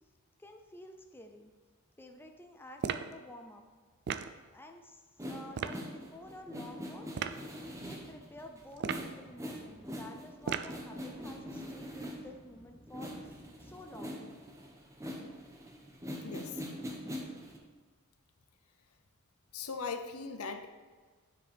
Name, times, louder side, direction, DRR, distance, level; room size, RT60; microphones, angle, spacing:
voice 1, 0.4-1.5 2.0-3.6 4.5-7.1 7.8-13.1 13.6-14.2, left 1 dB, 10° left, 4 dB, 0.5 m, -51 dB
sound 1, 2.8-3.1 4.1-4.3 5.5-5.8 7.1-7.4 8.8-9.2 10.5-10.8, right 7 dB, 55° right, 0.4 m, -35 dB
sound 2, 5.2-12.5 12.9-17.6, equal, 15° right, 0.9 m, -43 dB
sound 3, 7.2-13.9, left 1 dB, 30° left, 1.2 m, -60 dB
voice 2, 16.2-16.6 19.5-20.7, left 5 dB, 80° left, 8 dB, 0.7 m, -39 dB
9.6 x 5.2 x 3.4 m, 1.5 s
head